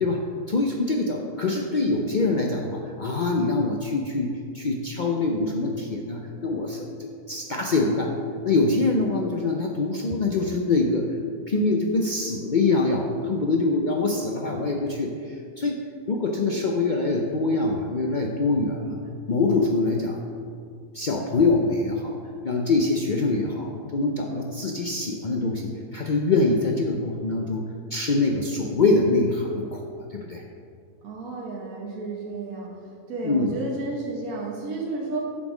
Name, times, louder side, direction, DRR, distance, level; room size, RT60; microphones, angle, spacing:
voice 1, 0.0-8.1 8.5-11.1 11.5-15.1 15.6-15.8 16.1-19.0 19.3-20.2 20.9-22.2 22.4-27.6 27.9-29.8 30.1-30.4 33.2-33.6, left 3 dB, 65° left, 0 dB, 0.4 m, -24 dB
voice 2, 31.0-32.7 33.1-35.2, right 3 dB, 70° right, -2 dB, 1.4 m, -32 dB
7.4 x 6.2 x 4.9 m, 2.2 s
omnidirectional pair, 1.6 m